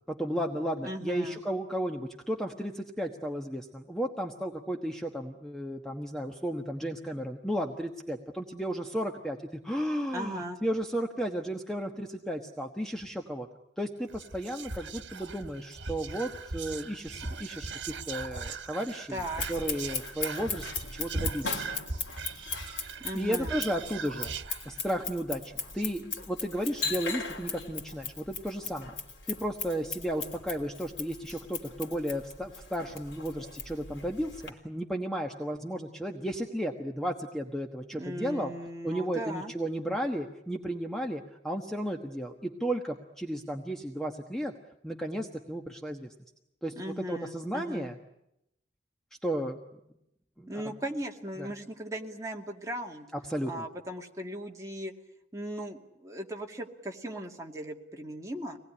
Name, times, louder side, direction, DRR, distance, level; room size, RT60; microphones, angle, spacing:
voice 1, 0.1-13.5 13.8-19.2 19.5-21.7 22.2-24.3 24.6-28.9 29.3-38.5 38.8-44.5 44.8-46.1 46.6-48.0 49.2-49.6 50.4-50.6 51.4-51.5 53.2-53.6, equal, 5° left, 2 dB, 1.3 m, -34 dB
voice 2, 0.8-1.4 10.1-10.6 19.1-19.5 23.0-23.6 38.0-39.5 46.8-47.9 50.5-53.1 53.5-54.9 55.3-58.6, equal, 20° right, 1 dB, 2.3 m, -38 dB
Whispering, 14.1-25.1 25.5-25.6 25.8-26.2, right 4 dB, 80° right, 1.3 m, -39 dB
Scissors, 19.2-34.5, left 5 dB, 80° left, 3.3 m, -38 dB
25.0 x 19.5 x 9.9 m, 0.83 s
head